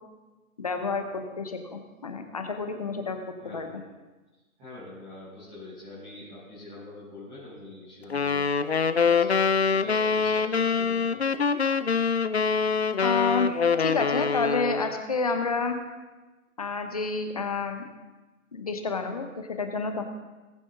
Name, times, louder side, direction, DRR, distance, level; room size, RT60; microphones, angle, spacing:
voice 1, 0.6-3.2 3.4-3.7 13.0-15.8 16.6-17.8 18.5-20.0, left 4 dB, 25° left, 6 dB, 0.9 m, -29 dB
voice 2, 3.4-3.7 4.6-11.2, left 2 dB, ahead, -15 dB, 0.7 m, -45 dB
sound 1, 8.1-14.9, left 5 dB, 45° left, 0.6 m, -24 dB
20.5 x 7.4 x 3.9 m, 1.2 s
figure-of-eight pair, 145°, 44 cm